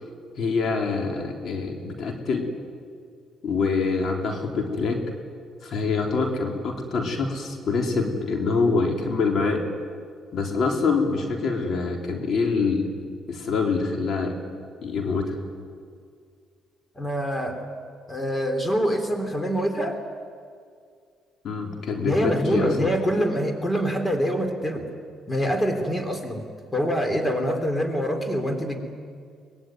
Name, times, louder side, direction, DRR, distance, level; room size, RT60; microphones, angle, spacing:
voice 1, 0.4-2.5 3.4-5.0 5.6-9.6 10.3-12.9 13.3-14.4 14.8-15.4 21.4-22.9, left 4 dB, 60° left, 2 dB, 3.7 m, -25 dB
voice 2, 17.0-17.6 18.1-20.0 22.0-24.9 25.3-26.4 26.7-28.8, equal, 20° left, 5 dB, 3.7 m, -25 dB
23.5 x 20.5 x 9.5 m, 2.2 s
supercardioid pair, 75°, 0 cm